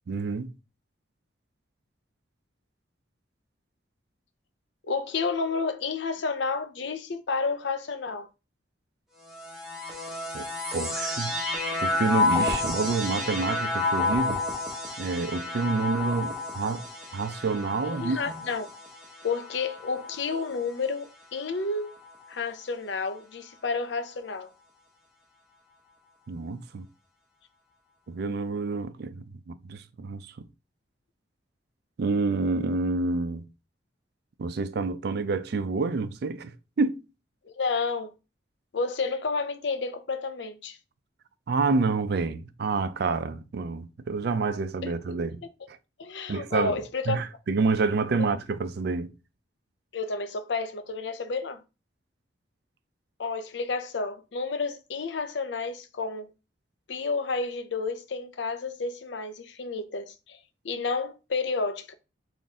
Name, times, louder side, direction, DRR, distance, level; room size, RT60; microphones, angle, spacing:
voice 1, 0.1-0.5 10.3-10.5 10.7-11.3 11.8-14.4 15.0-16.8 17.1-18.4 26.3-26.9 28.1-30.2 32.0-33.4 34.4-36.5 36.8-37.0 41.5-45.4 46.3-46.8 47.1-49.1, right 4 dB, 55° right, 0.4 m, -28 dB
voice 2, 4.8-8.3 17.8-18.7 19.2-21.9 22.3-24.5 37.6-38.1 38.7-40.8 44.8-45.2 46.0-47.2 48.2-48.3 49.9-51.6 53.2-56.3 56.9-60.4 60.6-61.9, left 4 dB, 65° left, 0.6 m, -31 dB
zebra jupiter with deelay, 9.3-20.8 21.5-22.3, left 3 dB, ahead, 0.8 m, -31 dB
3.9 x 2.5 x 3.6 m
head